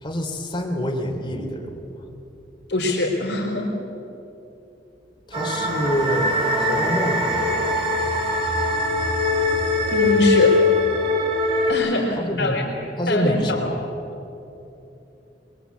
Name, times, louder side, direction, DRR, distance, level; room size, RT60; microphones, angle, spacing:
voice 1, 0.0-1.9 5.3-7.8 12.2-12.6 13.0-13.8, equal, 25° left, 0 dB, 3.3 m, -26 dB
voice 2, 2.7-3.7 9.9-10.6 11.7-12.7 13.1-13.7, left 1 dB, 70° left, -3 dB, 4.3 m, -23 dB
sound 1, 5.3-11.7, left 2 dB, 30° right, 3.2 m, -21 dB
22.5 x 22.5 x 8.5 m, 2.9 s
head